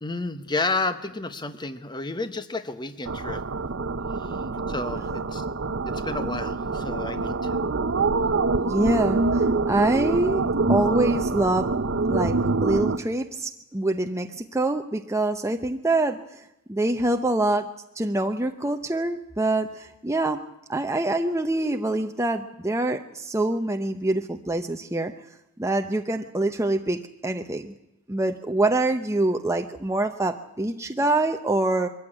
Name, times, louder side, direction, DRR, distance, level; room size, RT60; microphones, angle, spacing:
voice 1, 0.0-3.4 4.2-4.4 4.7-5.4 5.9-7.6, left 3 dB, 20° left, 10 dB, 0.9 m, -31 dB
sound 1, 3.1-13.0, right 3 dB, 55° right, 0.8 m, -25 dB
voice 2, 8.6-10.4 10.7-11.7 12.1-16.2 16.7-20.4 20.7-25.1 25.6-27.7 28.1-31.9, right 2 dB, 15° right, 5 dB, 0.8 m, -25 dB
22.5 x 15.0 x 9.9 m, 0.89 s
head